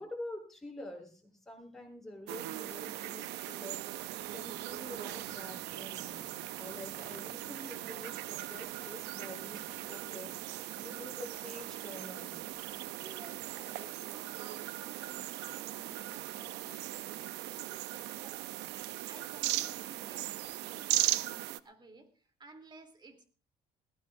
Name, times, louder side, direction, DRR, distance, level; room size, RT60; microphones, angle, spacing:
voice 1, 0.0-3.8 4.3-6.2 6.6-10.3 10.7-12.4, left 1 dB, ahead, -1 dB, 7.9 m, -47 dB
sound 1, 2.3-21.6, right 15 dB, 85° right, 0.6 m, -38 dB
sound 2, 3.7-13.6, right 1 dB, 70° right, 5.9 m, -62 dB
voice 2, 12.9-23.2, right 3 dB, 25° right, 6 dB, 3.0 m, -56 dB
21.0 x 17.5 x 2.6 m, 0.37 s
cardioid pair, 110°, 17 cm